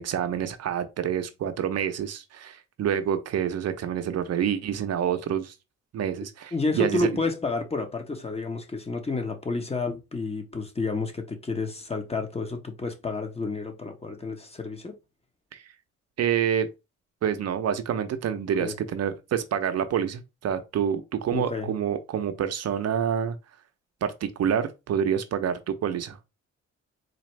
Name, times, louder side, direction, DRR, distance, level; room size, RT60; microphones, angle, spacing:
voice 1, 0.0-5.5 5.9-7.2 15.5-15.6 16.2-16.7 17.2-23.4 24.0-26.3, right 8 dB, 55° right, 0.6 m, -27 dB
voice 2, 6.5-15.0 18.6-18.7 21.3-21.7, left 3 dB, 20° left, 0.9 m, -30 dB
4.1 x 2.4 x 3.1 m
cardioid pair, 90°, 30 cm